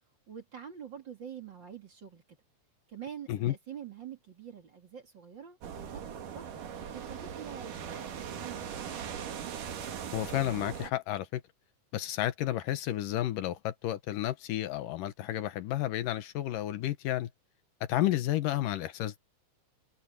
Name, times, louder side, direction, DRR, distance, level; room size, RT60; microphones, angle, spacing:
voice 1, 0.3-2.4 2.9-6.5 6.9-9.0, right 8 dB, 40° right, 2.5 m, -46 dB
sound 1, 5.6-10.9, right 8 dB, 75° right, 3.6 m, -40 dB
voice 2, 10.1-11.4 11.9-17.3 17.8-19.2, left 13 dB, 80° left, 2.7 m, -31 dB
omnidirectional pair, 3.8 m